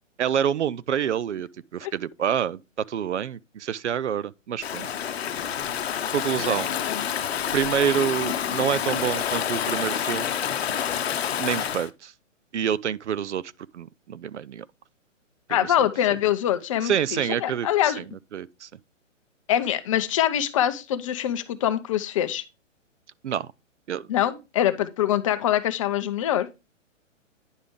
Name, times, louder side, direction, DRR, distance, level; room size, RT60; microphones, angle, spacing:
voice 1, 0.2-4.9 6.1-6.7 7.5-10.3 11.4-12.1 12.5-14.7 16.8-18.0 18.3-18.7 23.2-23.5 23.9-24.1, right 9 dB, 65° right, 0.6 m, -27 dB
Stream / Ocean, 4.6-11.9, left 9 dB, 55° left, 0.9 m, -28 dB
voice 2, 15.5-18.0 19.5-22.4 24.1-26.5, left 11 dB, 25° left, 0.6 m, -24 dB
10.0 x 5.0 x 3.5 m
figure-of-eight pair, 130°, 38 cm